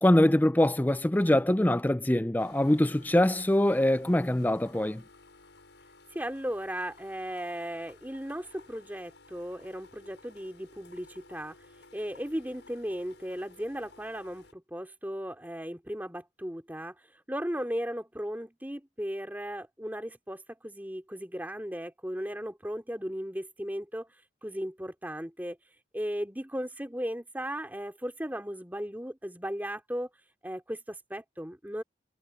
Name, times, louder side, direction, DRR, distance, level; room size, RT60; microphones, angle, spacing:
voice 1, 0.0-5.0, left 1 dB, 10° left, 0.4 m, -23 dB
sound 1, 2.4-14.5, left 3 dB, 90° left, 7.6 m, -56 dB
voice 2, 6.1-11.5 11.9-24.1 24.4-25.6 25.9-30.1 30.4-31.8, equal, 10° right, 2.8 m, -36 dB
head